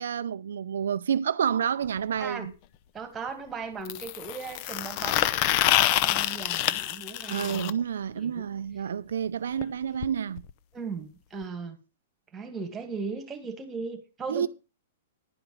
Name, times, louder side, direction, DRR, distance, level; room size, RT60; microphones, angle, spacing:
voice 1, 0.0-2.5 7.3-10.4 14.3-14.5, right 8 dB, 85° right, 0.5 m, -29 dB
sound 1, 1.8-1.9 3.9-7.7 9.6-9.7 10.0-10.1 10.4-10.5 11.4-11.5, left 14 dB, 40° left, 0.7 m, -26 dB
voice 2, 2.2-2.5 2.9-7.8 8.2-8.5 10.7-11.8 12.3-14.5, right 5 dB, 15° right, 2.2 m, -38 dB
11.5 x 5.0 x 7.7 m
hypercardioid pair, 155°, 0 cm